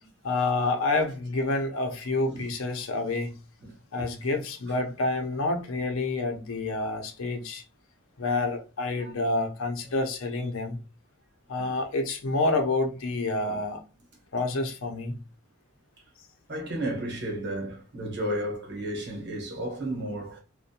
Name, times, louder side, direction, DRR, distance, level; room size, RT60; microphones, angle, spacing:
voice 1, 0.2-3.4 3.9-7.6 8.2-10.8 11.5-13.8 14.3-15.2, left 2 dB, 75° left, 0.6 m, -28 dB
voice 2, 16.5-20.4, right 1 dB, 55° right, 0.9 m, -33 dB
2.4 x 2.2 x 2.7 m
head